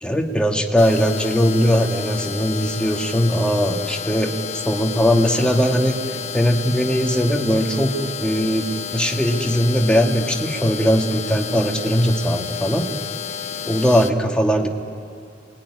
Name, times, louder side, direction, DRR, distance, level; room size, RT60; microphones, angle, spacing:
voice 1, 0.0-6.0 6.3-7.9 8.2-12.9 13.7-14.7, equal, 5° left, 2 dB, 1.7 m, -19 dB
sound 1, 0.8-14.1, left 7 dB, 40° left, 0.8 m, -31 dB
28.5 x 21.0 x 9.8 m, 2.4 s
head